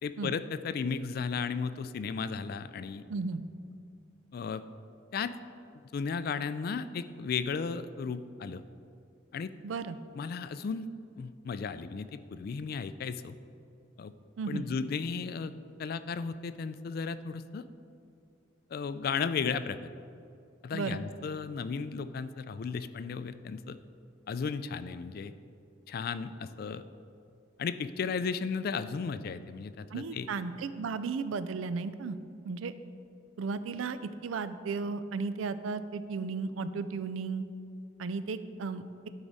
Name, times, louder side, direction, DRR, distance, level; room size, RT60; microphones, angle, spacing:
voice 1, 0.0-3.0 4.3-4.6 5.1-5.3 5.9-8.6 9.3-9.5 10.1-10.9 11.2-13.3 14.0-14.1 14.5-15.5 15.8-17.6 18.7-19.8 20.6-23.8 24.3-25.3 25.9-26.8 27.6-30.3, left 5 dB, 50° left, 13 dB, 0.3 m, -34 dB
voice 2, 3.1-3.4 9.6-10.0 14.4-14.7 20.7-21.0 29.9-32.2 32.4-32.7 33.4-37.5 38.0-38.8, right 4 dB, 80° right, 13 dB, 0.4 m, -34 dB
12.0 x 4.9 x 4.1 m, 2.4 s
head